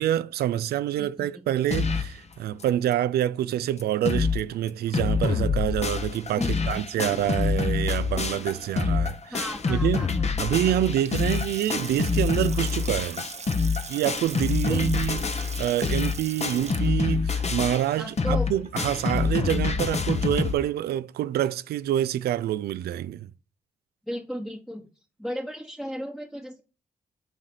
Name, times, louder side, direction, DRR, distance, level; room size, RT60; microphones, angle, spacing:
voice 1, 0.0-10.0 10.4-13.2 13.9-15.2 15.6-23.3, right 12 dB, 75° right, 0.4 m, -27 dB
voice 2, 1.0-1.4 6.4-6.8 9.3-10.3 14.7-15.2 18.0-18.5 24.1-24.9 25.2-26.6, equal, ahead, 1.1 m, -35 dB
sound 1, 1.7-2.2 2.6-2.7 2.9-3.0 3.5-3.6 3.8-4.4 4.7-20.5, left 5 dB, 40° left, 0.9 m, -26 dB
Water tap faucet / Sink (filling or washing) / Splash splatter, 10.8-18.9, right 5 dB, 45° right, 0.7 m, -41 dB
8.9 x 3.2 x 4.1 m
supercardioid pair, 45°, 16 cm